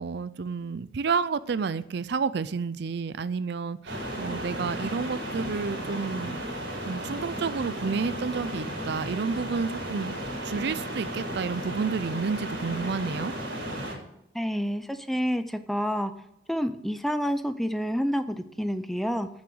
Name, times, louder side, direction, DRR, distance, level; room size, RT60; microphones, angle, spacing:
voice 1, 0.0-6.4 6.9-10.1 10.4-13.3, right 5 dB, 60° right, 16 dB, 0.4 m, -30 dB
sound 1, 3.9-14.0, right 1 dB, 80° right, 3.9 m, -34 dB
voice 2, 14.3-16.1 16.5-19.3, equal, ahead, 10 dB, 0.5 m, -28 dB
8.9 x 7.2 x 7.7 m, 0.80 s
head